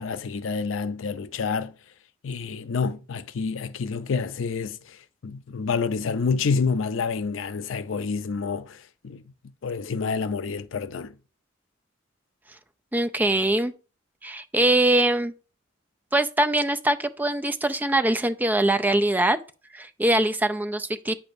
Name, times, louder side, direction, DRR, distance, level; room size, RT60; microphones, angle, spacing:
voice 1, 0.0-1.7 2.2-5.0 5.2-9.2 9.6-11.1, left 5 dB, 80° left, 0.5 m, -28 dB
voice 2, 12.9-13.7 14.2-15.3 16.1-19.4 19.7-21.1, right 1 dB, 10° right, 0.4 m, -22 dB
9.3 x 6.9 x 2.6 m
head